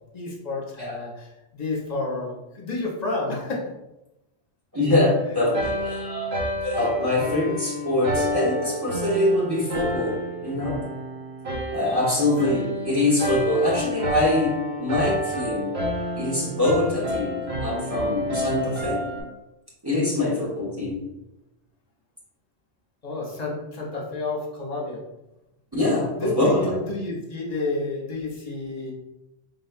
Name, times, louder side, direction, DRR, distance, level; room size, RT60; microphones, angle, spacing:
voice 1, 0.1-3.7 12.1-12.2 12.6-12.7 23.0-25.0 26.2-28.9, left 2 dB, 40° left, -2 dB, 1.0 m, -30 dB
voice 2, 4.7-6.4 6.6-10.8 11.7-15.7 16.1-19.0 19.8-21.0 25.7-26.7, left 1 dB, 20° right, -6 dB, 1.1 m, -24 dB
sound 1, 5.5-19.2, equal, 70° right, 1.3 m, -29 dB
5.4 x 3.7 x 2.2 m, 0.93 s
omnidirectional pair, 1.1 m